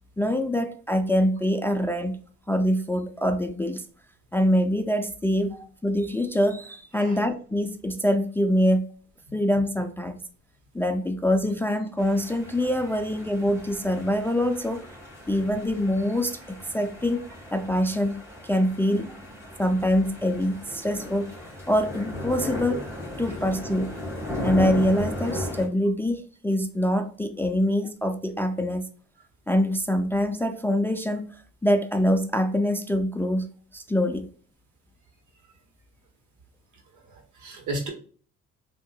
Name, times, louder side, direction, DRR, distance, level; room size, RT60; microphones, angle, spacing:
voice 1, 0.2-2.2 2.5-3.9 4.3-8.9 9.3-10.2 10.7-14.9 15.3-17.2 17.5-19.1 19.6-21.3 21.7-22.8 23.2-24.0 24.4-28.9 29.5-31.4 31.6-34.3, equal, 10° left, 0.3 m, -24 dB
sound 1, 12.0-25.7, left 1 dB, 10° right, 1.6 m, -36 dB
voice 2, 37.1-37.9, right 2 dB, 75° right, 1.5 m, -34 dB
3.6 x 2.8 x 2.2 m
cardioid pair, 90°, 30 cm